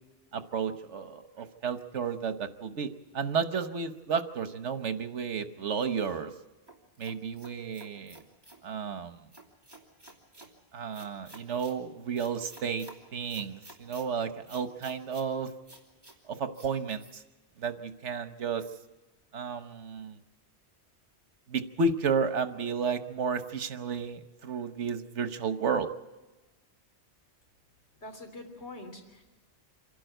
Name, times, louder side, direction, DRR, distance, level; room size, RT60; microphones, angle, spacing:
voice 1, 0.3-2.9 3.1-6.3 7.0-8.2 8.6-9.2 10.7-12.9 13.1-15.5 16.3-17.2 17.6-18.6 19.3-20.2 21.5-25.9, right 5 dB, 85° right, 9 dB, 1.4 m, -32 dB
sound 1, 6.7-8.6 9.3-10.5 10.9-11.8 12.2-13.0 13.3-14.1 14.5-15.3 15.7-16.2 16.5-16.7 17.0-17.1, right 1 dB, 20° right, 2.8 m, -51 dB
voice 2, 28.0-29.2, left 2 dB, 70° left, 2 dB, 3.7 m, -44 dB
26.0 x 11.5 x 9.1 m, 1.1 s
omnidirectional pair, 1.2 m